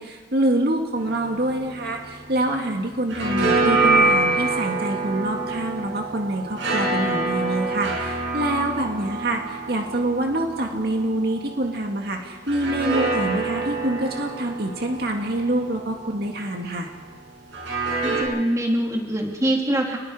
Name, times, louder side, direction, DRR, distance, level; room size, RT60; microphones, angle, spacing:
voice 1, 0.0-16.9, right 1 dB, 60° right, 2 dB, 2.1 m, -26 dB
sound 1, 0.9-2.6 2.9-11.6 12.4-16.5 17.5-18.2, right 3 dB, 85° right, 7.7 m, -26 dB
voice 2, 18.0-20.0, right 1 dB, 20° right, 0 dB, 3.0 m, -24 dB
28.5 x 20.5 x 5.0 m, 1.4 s
head